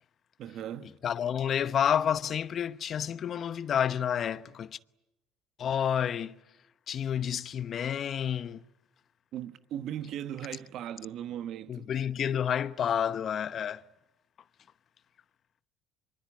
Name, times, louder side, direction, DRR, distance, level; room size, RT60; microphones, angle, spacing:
voice 1, 0.4-0.9 9.3-11.9, right 10 dB, 60° right, 1.2 m, -38 dB
voice 2, 1.0-4.8 5.6-6.4 6.9-8.6 11.7-13.8, left 8 dB, 50° left, 0.9 m, -29 dB
25.0 x 23.5 x 9.9 m
hypercardioid pair, 75°, 0 cm